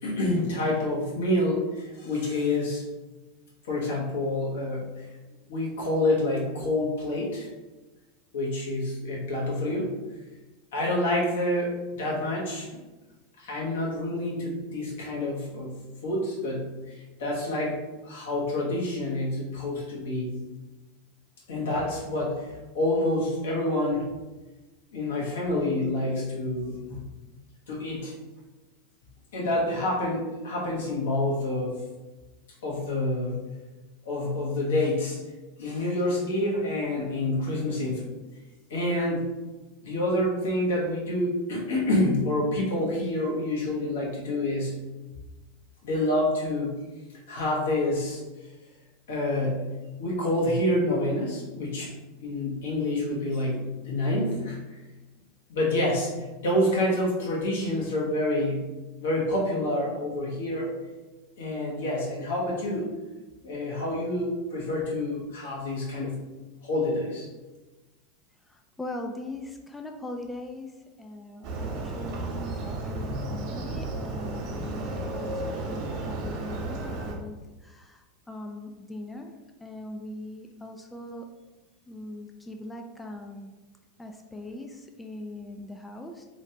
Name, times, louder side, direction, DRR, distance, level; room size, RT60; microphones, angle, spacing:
voice 1, 0.0-2.8 3.7-4.9 5.5-7.5 8.3-9.9 10.7-12.7 13.4-17.8 18.0-20.4 21.5-24.1 24.9-27.0 27.7-28.1 29.3-31.8 32.6-33.4 34.0-35.2 35.6-38.1 38.7-39.3 39.8-44.8 45.8-46.8 47.3-48.2 49.1-49.7 50.0-51.9 52.2-54.6 55.5-56.1 56.4-58.7 59.0-60.7 61.4-62.9 63.4-66.2 66.6-67.3, left 1 dB, 80° left, -3 dB, 1.1 m, -27 dB
voice 2, 68.5-77.4 77.6-79.3 79.6-81.3 81.9-83.5 84.0-86.3, left 1 dB, 10° left, 3 dB, 0.4 m, -40 dB
Motorcycle, 71.4-77.2, right 2 dB, 55° right, 0.8 m, -33 dB
3.2 x 3.1 x 2.8 m, 1.2 s
hypercardioid pair, 100°, 0 cm